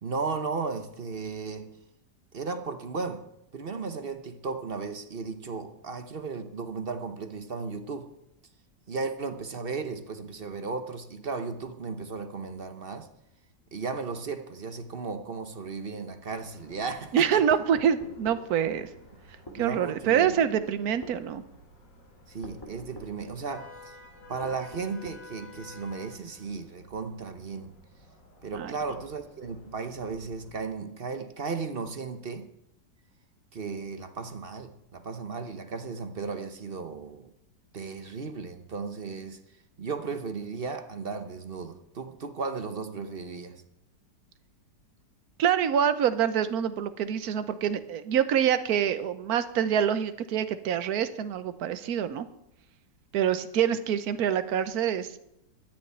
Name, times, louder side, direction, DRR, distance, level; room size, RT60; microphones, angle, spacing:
voice 1, 0.0-1.7 2.3-3.2 3.5-8.1 8.9-13.1 13.7-17.4 19.6-20.4 22.3-24.0 24.3-27.8 28.4-32.5 33.5-37.3 37.7-39.4 39.8-43.6, right 4 dB, 40° right, 0.9 m, -35 dB
sound 1, 16.3-30.7, left 2 dB, 80° left, 3.1 m, -53 dB
voice 2, 17.1-18.9 19.5-21.4 28.5-28.7 45.4-52.3 53.1-55.2, right 9 dB, 60° right, 1.3 m, -26 dB
sound 2, 17.5-18.5 19.5-19.6 20.2-20.4 21.0-21.2 22.4-23.2 24.4-25.3, equal, 15° left, 1.9 m, -44 dB
13.0 x 7.0 x 9.8 m
omnidirectional pair, 1.9 m